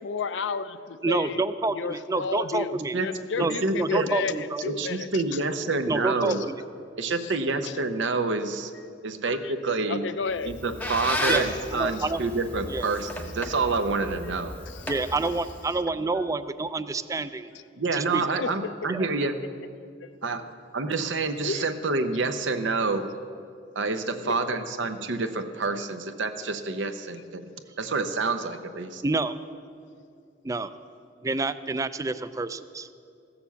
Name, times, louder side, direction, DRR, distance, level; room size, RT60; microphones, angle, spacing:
voice 1, 0.0-5.4 7.1-7.3 7.6-7.7 9.2-9.5 9.9-10.6 11.9-12.1 14.7-14.8 18.4-18.7 20.2-20.4 21.4-21.7 24.2-24.6, left 5 dB, 75° left, 13 dB, 0.5 m, -33 dB
voice 2, 1.0-2.9 3.4-4.6 5.9-6.6 11.3-11.4 11.7-12.2 12.7-12.9 14.9-17.5 17.9-18.2 18.9-19.1 29.0-29.4 30.4-30.7 31.2-32.9, right 3 dB, 20° right, 13 dB, 0.3 m, -28 dB
voice 3, 3.4-4.1 4.6-6.5 7.0-8.7 9.0-10.0 10.5-14.5 17.8-19.4 20.2-20.4 20.7-23.1 23.7-27.5 27.8-29.0, right 3 dB, 85° right, 8 dB, 0.8 m, -28 dB
Squeak, 10.3-15.8, left 1 dB, 10° left, 0.9 m, -34 dB
15.5 x 6.9 x 7.0 m, 2.4 s
head